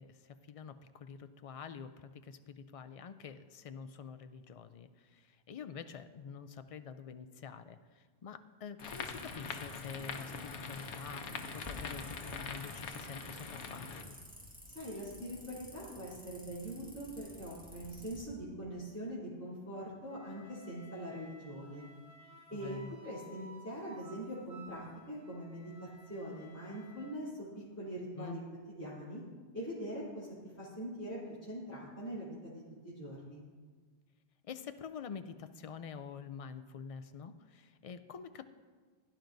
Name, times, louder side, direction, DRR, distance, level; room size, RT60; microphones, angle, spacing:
voice 1, 0.0-11.3 11.5-14.2 22.5-22.9 28.2-28.4 34.4-38.4, left 6 dB, 65° left, 10 dB, 0.3 m, -47 dB
sound 1, 8.8-14.0, left 5 dB, 85° left, 1.1 m, -43 dB
sound 2, 8.8-18.2, equal, 10° right, 1.7 m, -52 dB
voice 2, 14.7-21.9 22.5-27.3 27.5-28.4 28.7-29.2 29.5-30.3 30.6-33.4, equal, 15° left, -11 dB, 3.0 m, -43 dB
Wind instrument woodwind instrument, 20.1-27.2, right 2 dB, 55° right, 2.1 m, -56 dB
16.5 x 10.5 x 2.6 m, 1.5 s
omnidirectional pair, 1.1 m